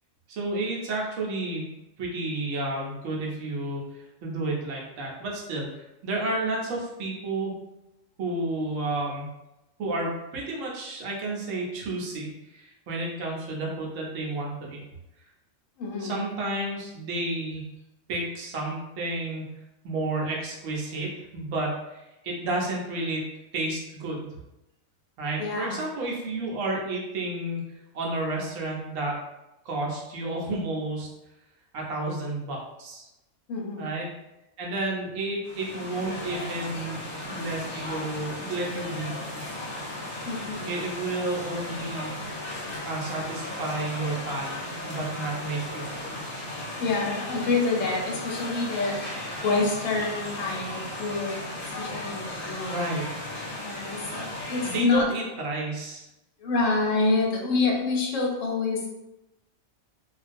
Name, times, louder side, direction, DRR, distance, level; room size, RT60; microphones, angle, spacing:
voice 1, 0.3-1.6 2.0-7.5 8.2-9.3 9.8-14.8 16.0-17.6 18.1-19.4 19.8-24.3 25.2-27.6 27.9-29.2 29.6-31.1 31.7-33.1 33.8-34.1 34.6-37.0 37.3-39.3 40.6-42.2 42.8-44.6 44.9-46.2 52.7-53.1 54.6-56.1, right 2 dB, 75° right, -2 dB, 1.0 m, -31 dB
voice 2, 15.8-16.2 25.4-25.9 33.5-33.9 40.2-40.7 46.8-52.9 53.6-55.1 56.4-59.0, left 3 dB, 75° left, -1 dB, 0.9 m, -27 dB
sound 1, 35.4-54.8, left 1 dB, 45° left, 0.8 m, -36 dB
2.4 x 2.2 x 2.5 m, 0.94 s
omnidirectional pair, 1.4 m